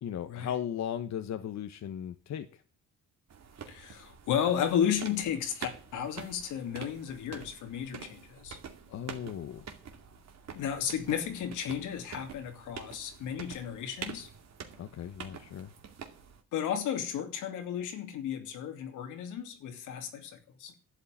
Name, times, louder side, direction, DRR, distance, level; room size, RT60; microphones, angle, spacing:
voice 1, 0.0-2.6 8.9-9.7 14.8-15.7, left 9 dB, 65° left, 1.2 m, -37 dB
sound 1, 3.3-16.4, right 7 dB, 60° right, 2.4 m, -47 dB
voice 2, 3.7-8.6 10.5-14.3 16.5-20.7, left 9 dB, 90° left, 2.7 m, -33 dB
11.5 x 8.6 x 8.6 m
cardioid pair, 90°, 30 cm